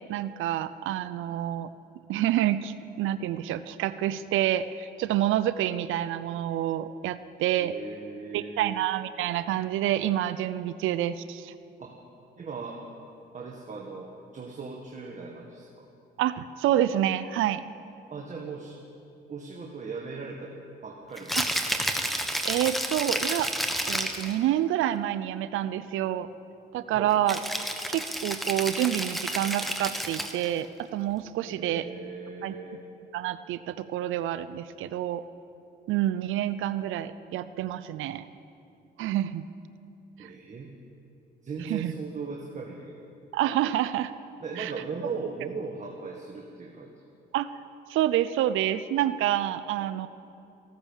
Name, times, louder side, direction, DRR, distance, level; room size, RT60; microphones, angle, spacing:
voice 1, 0.1-1.7 2.1-7.7 8.3-11.5 16.2-17.6 22.4-23.5 23.9-26.3 26.7-27.4 27.9-31.9 32.4-32.5 33.1-35.2 35.9-38.3 39.0-39.5 40.2-40.3 41.7-41.9 43.3-44.1 44.6-44.7 47.3-47.6 47.9-50.1, right 12 dB, 85° right, 13 dB, 0.5 m, -28 dB
voice 2, 7.6-8.8 11.8-12.0 12.4-12.8 13.3-15.9 18.1-18.8 19.3-20.5 20.8-21.5 26.9-27.1 31.4-32.8 40.2-40.7 41.4-43.1 44.4-46.9, right 4 dB, 35° right, 0 dB, 1.8 m, -38 dB
Rattle (instrument), 21.2-24.3 27.3-30.5, equal, ahead, 1.4 m, -30 dB
15.0 x 13.0 x 7.2 m, 2.6 s
cardioid pair, 90°, 20 cm